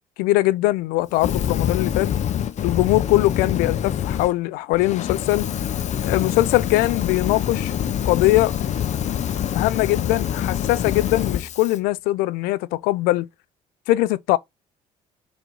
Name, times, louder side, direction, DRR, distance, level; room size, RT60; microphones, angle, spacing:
voice 1, 0.2-2.1 2.6-5.5 6.0-7.7 8.0-8.5 9.5-13.3 13.9-14.4, left 17 dB, 85° left, 0.5 m, -21 dB
Fire, 1.1-4.3 4.7-11.8, left 9 dB, 55° left, 0.9 m, -25 dB
5.3 x 4.0 x 4.6 m
supercardioid pair, 85°, 15 cm